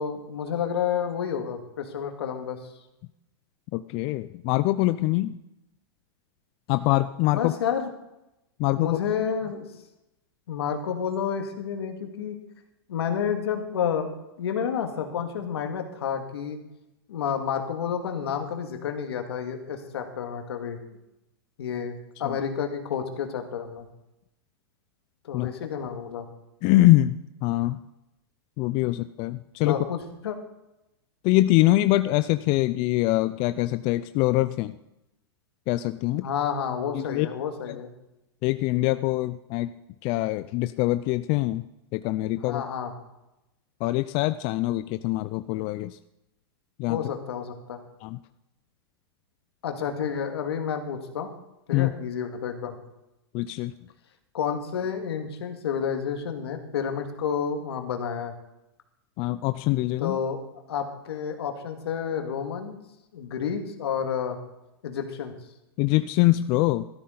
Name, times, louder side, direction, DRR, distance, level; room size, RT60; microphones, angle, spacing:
voice 1, 0.0-2.6 7.3-7.9 8.8-9.7 10.5-12.4 12.9-16.6 17.1-20.8 21.6-21.9 22.2-23.9 25.2-26.3 29.6-30.4 36.2-37.9 42.4-42.9 46.9-47.8 49.6-51.3 51.7-52.8 54.3-58.3 60.0-60.4 60.7-62.8 63.1-64.4 64.8-65.3, left 7 dB, 80° left, 5 dB, 2.0 m, -30 dB
voice 2, 3.7-5.4 6.7-7.5 8.6-9.0 22.2-22.4 25.3-25.5 26.6-27.8 28.6-29.8 31.2-34.8 35.7-36.3 36.9-37.3 37.7-37.8 38.4-39.7 40.0-41.6 41.9-42.6 43.8-46.0 46.8-47.0 48.0-48.2 51.7-51.9 53.3-53.7 59.2-60.2 65.8-66.8, left 17 dB, 40° left, 12 dB, 0.4 m, -24 dB
13.5 x 12.5 x 3.9 m, 0.91 s
hypercardioid pair, 125°, 13 cm